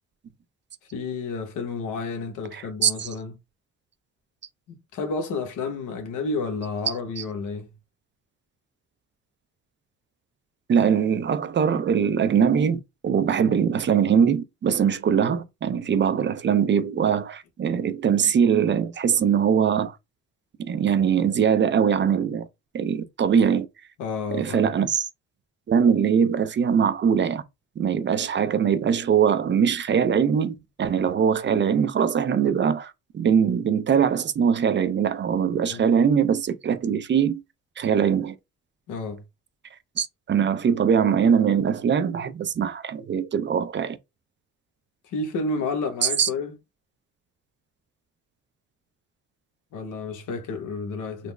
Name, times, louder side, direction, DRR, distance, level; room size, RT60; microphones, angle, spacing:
voice 1, 0.9-3.3 4.9-7.7 24.0-24.7 35.7-35.8 38.9-39.2 45.0-46.5 49.7-51.3, left 3 dB, 85° left, 1.0 m, -30 dB
voice 2, 2.5-3.1 7.2-7.3 10.7-20.0 20.6-22.5 22.7-23.7 24.3-25.1 25.7-27.4 27.8-37.4 37.8-38.4 40.0-44.0 46.0-46.3, right 7 dB, 40° right, 0.5 m, -22 dB
3.9 x 2.0 x 3.2 m
cardioid pair, 90°, 30 cm